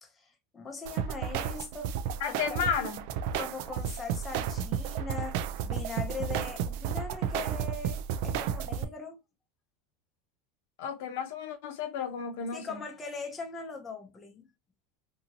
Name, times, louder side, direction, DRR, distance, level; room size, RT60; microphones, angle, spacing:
voice 1, 0.0-2.0 2.2-2.7 3.3-9.2 12.5-14.5, left 4 dB, 15° left, 0.5 m, -41 dB
sound 1, 0.9-8.8, right 8 dB, 60° right, 0.3 m, -32 dB
voice 2, 2.2-3.1 10.8-12.8, left 7 dB, 70° left, 0.7 m, -33 dB
2.7 x 2.7 x 2.7 m
supercardioid pair, 165°, 0 cm